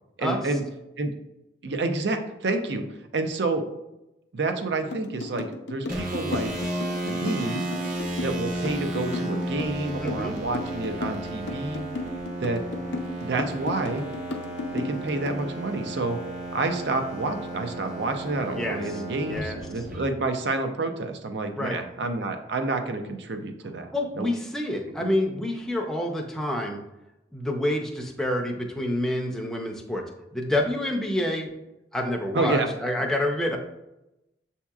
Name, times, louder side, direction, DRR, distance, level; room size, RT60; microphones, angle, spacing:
voice 1, 0.2-0.6 1.0-1.1 1.6-2.8 3.1-3.6 4.3-6.5 7.0-7.6 8.2-11.8 12.4-12.6 13.2-14.0 14.7-16.2 16.5-24.3 25.0-25.1 32.3-32.7, right 3 dB, 70° right, 6 dB, 0.5 m, -29 dB
sound 1, 4.9-15.4, left 3 dB, 75° left, 0.6 m, -34 dB
sound 2, 5.9-20.0, right 1 dB, 50° right, 0.9 m, -33 dB
voice 2, 10.0-10.4 18.5-19.6 21.6-21.8 23.9-26.8 27.3-30.0 30.3-31.5 31.9-33.6, left 1 dB, ahead, 0 dB, 0.5 m, -28 dB
7.1 x 2.8 x 2.3 m, 0.92 s
head